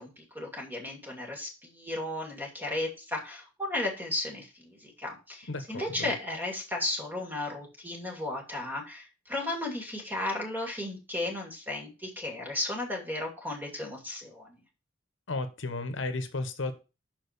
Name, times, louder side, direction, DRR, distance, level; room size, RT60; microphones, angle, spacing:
voice 1, 0.0-14.6, left 2 dB, 10° right, 2.4 m, -35 dB
voice 2, 5.5-6.1 15.3-16.7, left 2 dB, 80° left, 1.0 m, -34 dB
6.0 x 4.5 x 6.5 m
head